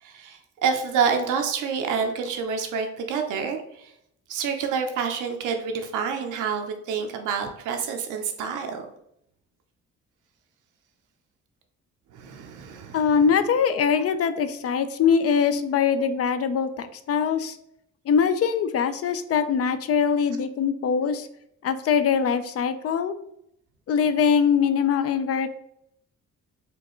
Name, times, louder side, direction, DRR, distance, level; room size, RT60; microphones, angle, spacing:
voice 1, 0.0-3.9 4.3-8.9 12.1-13.1, right 6 dB, 85° right, 4 dB, 0.7 m, -28 dB
voice 2, 12.9-17.6 18.1-21.3 21.6-23.1 23.9-25.5, left 6 dB, 50° left, 11 dB, 0.4 m, -22 dB
4.3 x 2.4 x 3.0 m, 0.75 s
cardioid pair, 90°, 30 cm